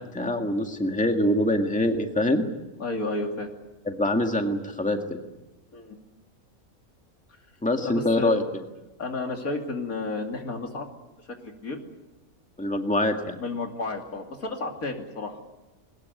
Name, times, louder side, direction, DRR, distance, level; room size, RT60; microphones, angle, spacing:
voice 1, 0.1-2.4 3.9-5.2 7.6-8.4 12.6-13.4, left 1 dB, 5° left, 4 dB, 1.9 m, -24 dB
voice 2, 2.8-3.5 5.7-6.0 7.8-8.4 9.0-10.9 11.3-11.8 13.4-15.4, left 2 dB, 80° left, 3 dB, 3.2 m, -32 dB
21.0 x 20.5 x 9.5 m, 1.0 s
omnidirectional pair, 1.5 m